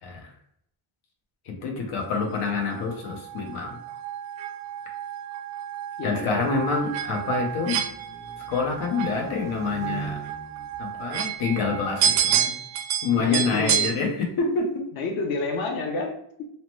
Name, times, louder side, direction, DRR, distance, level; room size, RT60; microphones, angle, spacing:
voice 1, 0.0-0.3 1.4-3.8 6.0-7.8 8.5-10.2 10.8-12.6 13.0-14.8, left 4 dB, 85° left, 1 dB, 0.9 m, -27 dB
sound 1, 2.2-13.9, right 9 dB, 70° right, 0.5 m, -30 dB
voice 2, 6.0-6.4 13.2-14.0 15.0-16.5, left 3 dB, 50° left, 3 dB, 0.5 m, -30 dB
sound 2, 6.4-11.9, right 4 dB, 5° right, 0.4 m, -43 dB
2.8 x 2.1 x 3.0 m, 0.71 s
cardioid pair, 130°, 48 cm